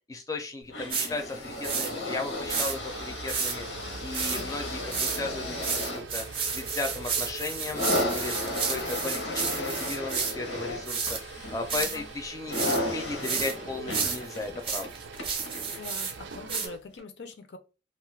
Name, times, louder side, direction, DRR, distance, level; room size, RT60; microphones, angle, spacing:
voice 1, 0.1-3.7 4.0-6.2 6.5-7.8 8.1-8.4 8.6-11.2 11.5-14.9, left 3 dB, 20° left, 0.4 m, -35 dB
sound 1, 0.7-16.2 17.0-17.1, left 1 dB, 85° left, 0.9 m, -35 dB
sound 2, 0.9-1.1 1.6-1.9 2.5-2.7 3.3-3.6 4.1-4.4 4.9-5.2 5.6-10.3 10.8-11.2 11.7-12.0 12.5-12.8 13.2-13.5 13.9-16.1 16.5-16.7, right 6 dB, 30° right, 0.6 m, -31 dB
sound 3, 2.4-16.8, right 4 dB, 85° right, 0.4 m, -43 dB
voice 2, 11.8-12.1 15.7-17.6, left 4 dB, 70° left, 0.5 m, -43 dB
2.5 x 2.3 x 3.3 m
head